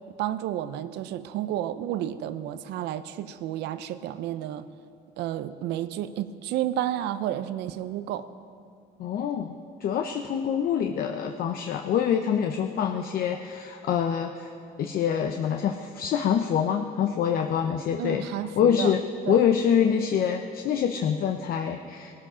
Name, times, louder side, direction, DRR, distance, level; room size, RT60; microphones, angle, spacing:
voice 1, 0.2-4.6 5.2-8.3 18.0-18.9 19.3-19.4, right 12 dB, 85° right, 13 dB, 0.7 m, -31 dB
voice 2, 9.0-14.5 14.8-18.3 18.6-19.0 19.3-22.1, left 8 dB, 60° left, 5 dB, 0.8 m, -25 dB
19.5 x 13.5 x 5.0 m, 2.5 s
cardioid pair, 110°, 17 cm